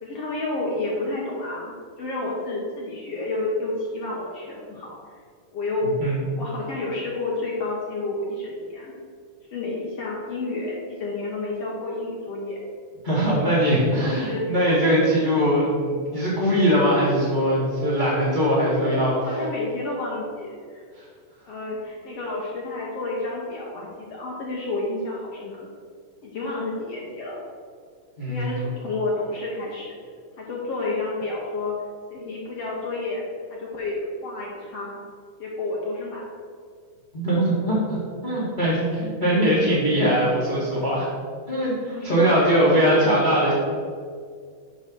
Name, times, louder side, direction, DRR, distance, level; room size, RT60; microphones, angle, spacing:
voice 1, 0.0-5.1 5.5-6.0 6.4-8.9 9.5-12.6 13.7-14.5 18.8-20.9 21.5-25.7 26.2-27.4 28.3-29.9 30.4-31.7 32.1-33.2 33.5-35.0 35.4-36.2 41.8-43.0, left 2 dB, 65° left, -4 dB, 1.6 m, -30 dB
voice 2, 13.0-19.1 28.2-28.5 37.1-38.0 38.2-41.1 41.5-43.5, equal, 45° left, -8 dB, 0.6 m, -21 dB
10.5 x 3.8 x 6.2 m, 2.1 s
omnidirectional pair, 4.3 m